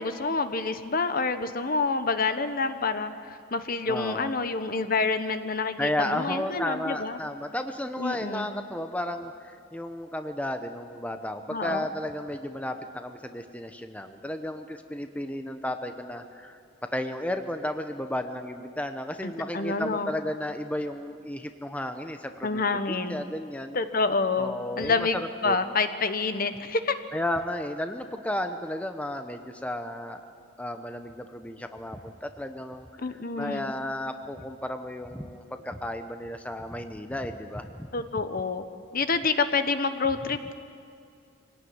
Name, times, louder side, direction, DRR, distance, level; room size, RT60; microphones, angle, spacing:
voice 1, 0.0-7.2 8.0-8.5 11.5-11.8 19.2-20.1 22.4-23.2 23.7-25.2 25.4-26.9 33.0-33.8 37.9-38.6 38.9-40.5, left 4 dB, 45° left, 10 dB, 1.1 m, -28 dB
voice 2, 3.9-4.3 5.8-16.6 16.9-23.8 24.4-25.6 27.1-30.2 30.6-37.9, left 1 dB, 5° left, 7 dB, 0.8 m, -33 dB
24.5 x 18.0 x 9.6 m, 2.4 s
head